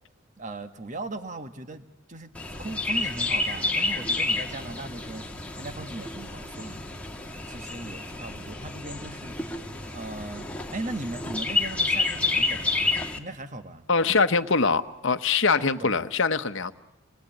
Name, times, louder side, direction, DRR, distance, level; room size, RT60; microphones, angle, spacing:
voice 1, 0.4-2.3 2.6-5.2 5.6-6.8 7.5-9.4 9.9-12.9 13.2-13.8 15.6-16.0, right 2 dB, 35° right, 9 dB, 1.4 m, -38 dB
Chirp tweet, 2.3-13.2, left 3 dB, 5° left, 1.7 m, -30 dB
voice 2, 13.9-16.7, left 4 dB, 60° left, 10 dB, 1.0 m, -23 dB
29.0 x 21.5 x 9.1 m, 1.1 s
head